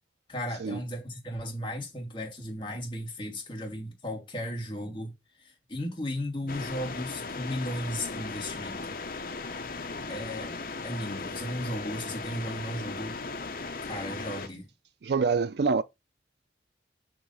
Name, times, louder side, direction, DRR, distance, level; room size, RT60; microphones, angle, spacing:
voice 1, 0.3-9.0 10.1-10.5 10.8-13.2 13.8-14.7, equal, 25° left, 2.9 m, -35 dB
sound 1, 6.5-14.5, left 3 dB, 50° left, 1.0 m, -37 dB
voice 2, 15.0-15.8, right 5 dB, 65° right, 0.4 m, -25 dB
6.2 x 5.0 x 5.7 m
head